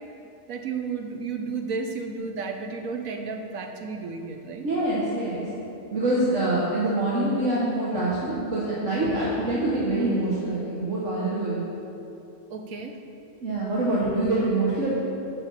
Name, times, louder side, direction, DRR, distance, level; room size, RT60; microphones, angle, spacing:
voice 1, 0.5-4.7 12.5-13.0 13.8-13.9, right 4 dB, 90° right, 4 dB, 1.3 m, -33 dB
voice 2, 4.6-5.4 5.9-11.6 13.4-14.9, right 2 dB, 65° right, -7 dB, 1.8 m, -25 dB
8.3 x 6.8 x 7.4 m, 2.8 s
omnidirectional pair, 1.4 m